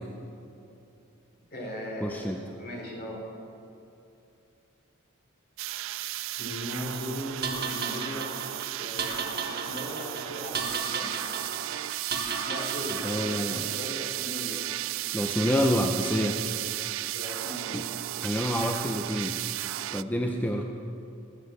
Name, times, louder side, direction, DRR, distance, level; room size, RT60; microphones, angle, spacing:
voice 1, 1.4-3.2 6.4-8.3 8.8-11.2 12.5-14.6 17.1-17.8, equal, 50° left, -1 dB, 3.6 m, -38 dB
voice 2, 2.0-2.4 13.0-13.6 15.1-16.4 17.7-17.9 18.2-19.4 19.9-20.6, equal, 10° left, 2 dB, 0.6 m, -27 dB
sound 1, 5.6-20.0, right 15 dB, 70° right, 0.3 m, -34 dB
sound 2, 7.4-13.7, right 5 dB, 50° right, 1.6 m, -35 dB
20.0 x 7.5 x 8.1 m, 2.7 s
head